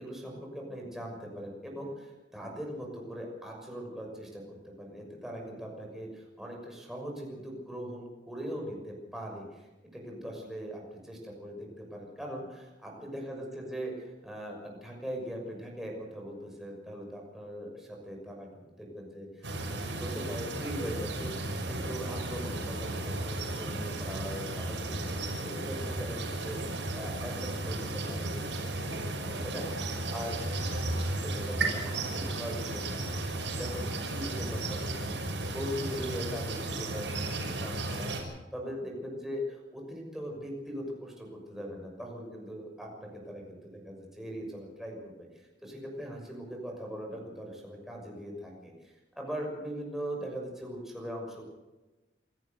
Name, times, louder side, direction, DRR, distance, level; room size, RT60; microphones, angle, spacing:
voice 1, 0.0-21.3 21.6-33.2 33.6-35.1 35.5-51.4, equal, ahead, -1 dB, 6.3 m, -41 dB
sound 1, 19.4-38.2, right 2 dB, 80° right, 5.8 m, -34 dB
28.0 x 14.0 x 6.7 m, 1.1 s
head